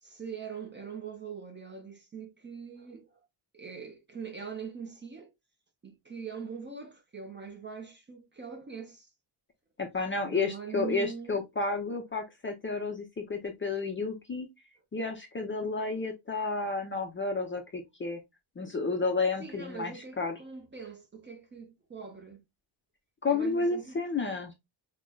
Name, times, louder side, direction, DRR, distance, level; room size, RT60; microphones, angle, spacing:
voice 1, 0.0-3.2 3.5-5.3 5.8-9.1 10.3-11.4 19.4-22.4 23.3-24.4, right 6 dB, 25° right, 0.6 m, -42 dB
voice 2, 9.8-14.5 14.9-18.2 18.6-20.4 23.2-24.5, left 3 dB, 25° left, 0.5 m, -31 dB
4.9 x 2.1 x 2.2 m
wide cardioid pair, 170°, 48 cm